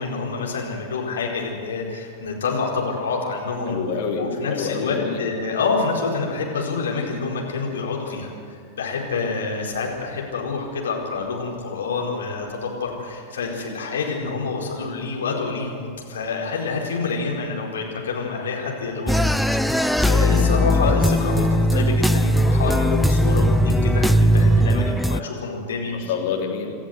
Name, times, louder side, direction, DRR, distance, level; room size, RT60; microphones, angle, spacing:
voice 1, 0.0-3.8 4.2-19.2 19.6-25.9, left 4 dB, 65° left, -1 dB, 4.6 m, -27 dB
voice 2, 3.7-5.2 25.9-26.7, left 6 dB, 45° left, 0 dB, 3.4 m, -27 dB
sound 1, 19.1-25.2, equal, ahead, 0.5 m, -18 dB
28.0 x 13.5 x 8.1 m, 2.2 s
figure-of-eight pair, 90°, 0 cm